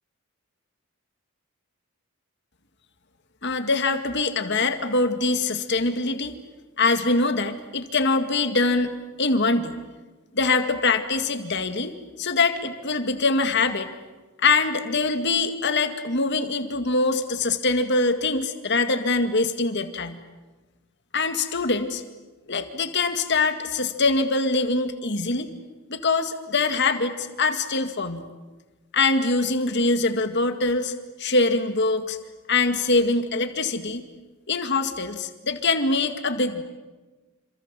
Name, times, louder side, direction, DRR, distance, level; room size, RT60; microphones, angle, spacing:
voice 1, 3.4-6.3 6.8-9.7 10.3-13.9 14.4-20.2 21.1-22.0 22.5-25.5 25.9-28.2 28.9-30.9 31.2-32.2 32.5-34.0 34.5-36.6, left 3 dB, 55° left, 8 dB, 2.1 m, -23 dB
27.5 x 26.5 x 7.7 m, 1.2 s
head